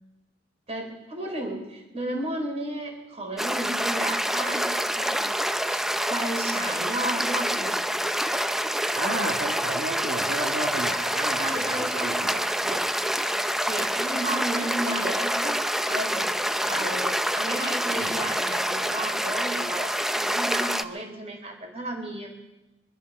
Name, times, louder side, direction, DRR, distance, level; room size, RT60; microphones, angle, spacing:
voice 1, 0.7-4.7 4.9-5.8 6.1-8.0 11.4-12.8 13.7-22.3, right 1 dB, 35° right, 3 dB, 3.7 m, -34 dB
sound 1, 3.4-20.8, equal, ahead, 0.5 m, -27 dB
voice 2, 8.9-12.3 18.0-18.3, right 1 dB, 65° right, -1 dB, 1.9 m, -33 dB
23.5 x 11.5 x 5.3 m, 1.0 s
head